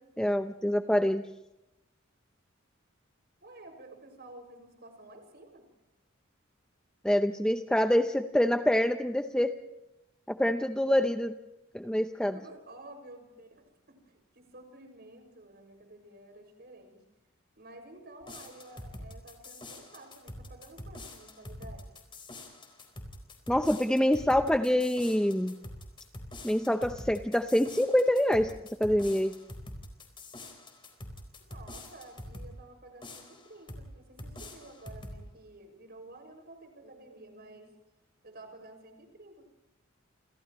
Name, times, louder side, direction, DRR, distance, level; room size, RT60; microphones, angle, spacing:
voice 1, 0.2-1.2 7.0-9.5 10.3-11.3 11.7-12.3 23.5-25.5 26.4-28.5 28.8-29.3, left 1 dB, 5° left, 6 dB, 0.7 m, -26 dB
voice 2, 3.4-5.6 12.3-17.0 17.6-21.9 31.4-37.7 38.2-39.4, right 2 dB, 55° right, 5 dB, 6.4 m, -51 dB
sound 1, 18.2-32.5 33.0-33.9 34.2-35.2, left 1 dB, 25° left, 4.3 m, -45 dB
29.0 x 28.5 x 3.1 m, 0.93 s
head